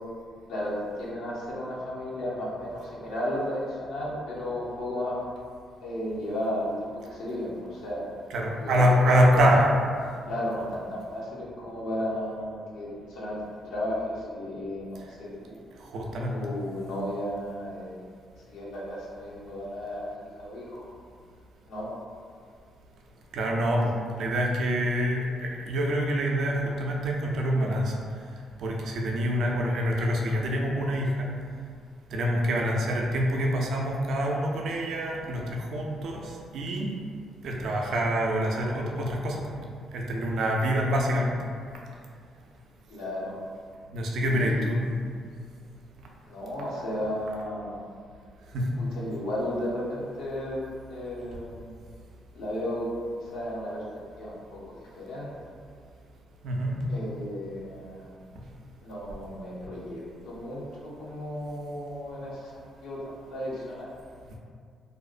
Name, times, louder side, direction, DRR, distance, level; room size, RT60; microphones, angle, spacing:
voice 1, 0.5-5.2 5.8-8.0 8.6-9.6 10.3-15.6 16.3-18.0 18.5-20.8 21.7-21.9 42.9-43.5 44.3-44.7 46.3-47.8 49.0-50.6 50.9-51.7 52.3-52.9 53.2-53.8 54.2-55.3 56.9-58.1 58.8-63.9, left 1 dB, 85° left, -6 dB, 0.6 m, -34 dB
voice 2, 8.3-9.7 15.9-16.3 23.3-27.9 28.6-31.3 32.1-36.9 37.4-41.3 43.9-44.9 48.5-48.7 56.4-56.8, equal, 70° right, -1 dB, 0.3 m, -26 dB
2.5 x 2.0 x 2.4 m, 2.1 s
cardioid pair, 75°, 0 cm